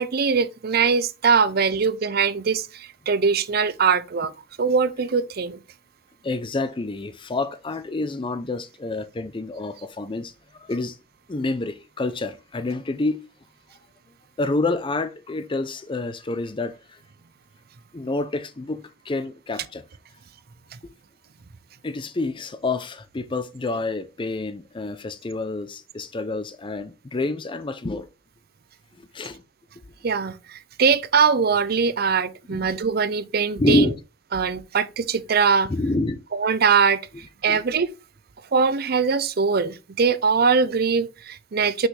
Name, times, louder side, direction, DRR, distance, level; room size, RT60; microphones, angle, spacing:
voice 1, 0.0-2.7 3.1-4.3 4.6-5.6 30.0-30.3 30.8-33.9 34.3-35.7 36.3-37.0 37.4-37.9 38.5-41.9, right 5 dB, 55° right, 0.6 m, -21 dB
voice 2, 6.2-10.3 10.6-11.0 11.3-13.2 14.4-16.7 17.9-18.8 19.1-19.8 21.8-28.1 29.1-29.4 32.5-32.7 33.6-34.0 35.7-36.2 37.5-37.6, left 2 dB, 30° left, 0.5 m, -27 dB
6.3 x 5.3 x 3.2 m
head